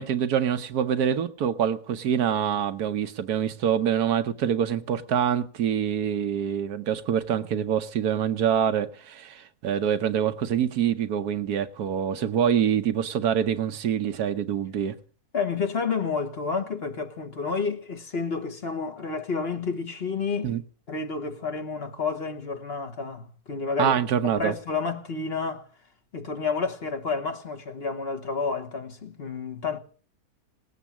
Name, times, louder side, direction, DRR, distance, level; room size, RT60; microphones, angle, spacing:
voice 1, 0.0-15.0 20.4-20.6 23.8-24.5, right 9 dB, 80° right, 1.4 m, -25 dB
voice 2, 15.3-20.6 20.9-24.0 24.4-25.7 26.1-29.8, left 4 dB, 40° left, 1.4 m, -30 dB
18.5 x 8.2 x 7.3 m
omnidirectional pair, 1.6 m